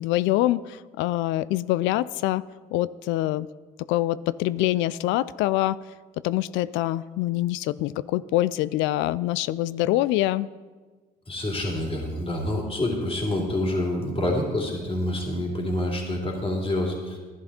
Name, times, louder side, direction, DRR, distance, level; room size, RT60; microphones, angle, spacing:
voice 1, 0.0-2.4 2.7-3.5 3.9-5.8 6.2-10.5, left 15 dB, 70° left, 19 dB, 0.4 m, -25 dB
voice 2, 11.3-17.2, left 1 dB, 30° left, -1 dB, 3.2 m, -27 dB
12.5 x 11.0 x 4.3 m, 1.4 s
hypercardioid pair, 55°, 20 cm